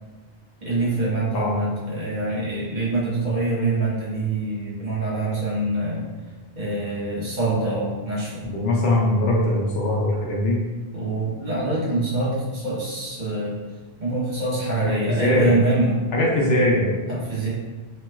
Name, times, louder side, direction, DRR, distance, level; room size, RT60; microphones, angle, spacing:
voice 1, 0.6-6.1 6.5-8.5 10.9-13.6 14.0-16.0 17.1-17.5, right 2 dB, 45° right, -8 dB, 1.0 m, -25 dB
voice 2, 8.4-10.6 14.8-15.5 16.1-16.9, left 1 dB, 75° left, -4 dB, 0.8 m, -21 dB
3.0 x 2.9 x 2.2 m, 1.3 s
omnidirectional pair, 1.1 m